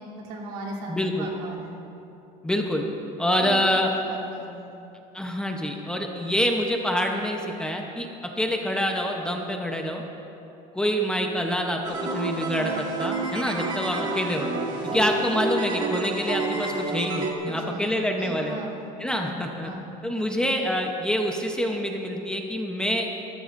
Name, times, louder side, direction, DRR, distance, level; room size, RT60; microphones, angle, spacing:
voice 1, 0.0-1.7 3.4-3.7 4.0-4.7 14.8-15.2 17.4-19.9, right 2 dB, 80° right, -3 dB, 3.1 m, -38 dB
voice 2, 0.9-1.3 2.4-2.9 3.2-3.9 5.1-8.1 8.4-10.0 10.7-14.5 14.9-18.6 19.0-19.7 20.0-23.1, equal, 5° left, 1 dB, 0.8 m, -26 dB
sound 1, 11.8-17.3, right 3 dB, 25° right, 1.6 m, -29 dB
26.5 x 13.5 x 2.6 m, 2.9 s
cardioid pair, 160°, 18 cm